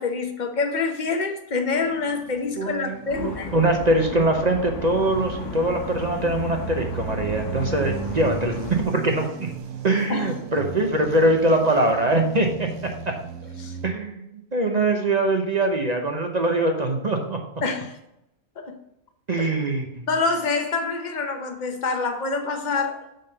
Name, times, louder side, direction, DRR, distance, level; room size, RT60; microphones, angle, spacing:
voice 1, 0.0-3.5 10.1-10.3 13.6-13.8 17.6-18.0 18.6-18.8 19.4-19.5 20.1-23.1, left 4 dB, 35° left, 0.8 m, -26 dB
sound 1, 1.8-3.5 4.1-13.9, right 5 dB, 70° right, 1.3 m, -36 dB
voice 2, 2.6-9.5 9.8-13.1 13.8-14.2 14.5-17.4 19.3-20.1, right 1 dB, 40° right, 0.7 m, -23 dB
sound 2, 3.1-8.8, left 2 dB, 60° left, 1.6 m, -35 dB
7.6 x 3.6 x 6.6 m
omnidirectional pair, 1.5 m